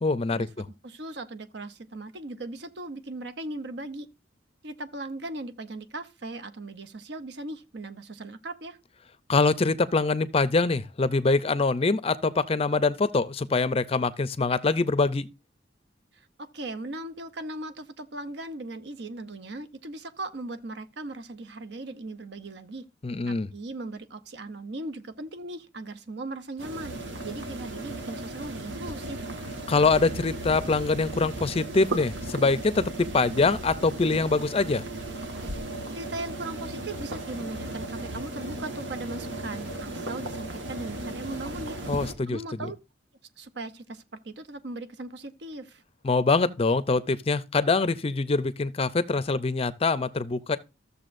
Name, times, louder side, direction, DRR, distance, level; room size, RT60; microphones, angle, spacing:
voice 1, 0.0-0.5 9.3-15.3 23.0-23.5 29.7-34.8 41.9-42.7 46.0-50.6, left 3 dB, 30° left, 0.5 m, -24 dB
voice 2, 0.8-4.1 4.6-8.8 16.1-22.8 23.3-29.3 35.9-41.8 42.3-42.8 43.4-45.8, right 2 dB, 65° right, 0.8 m, -38 dB
sound 1, 26.6-42.1, right 1 dB, 90° right, 1.5 m, -36 dB
14.0 x 6.9 x 2.6 m
head